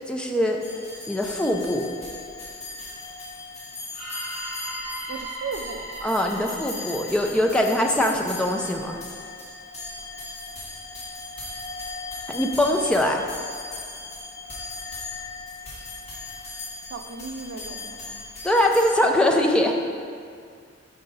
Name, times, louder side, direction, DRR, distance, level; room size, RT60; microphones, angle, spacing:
voice 1, 0.1-0.6 1.1-1.9 6.0-9.0 12.3-13.2 18.4-19.7, left 1 dB, 5° left, 1 dB, 0.4 m, -22 dB
sound 1, 0.6-19.0, left 3 dB, 35° left, 1.6 m, -38 dB
sound 2, 3.9-8.0, right 1 dB, 35° right, 1.8 m, -37 dB
voice 2, 5.1-5.9 16.9-18.3, right 4 dB, 60° right, 7 dB, 0.4 m, -36 dB
5.6 x 4.6 x 5.3 m, 2.2 s
head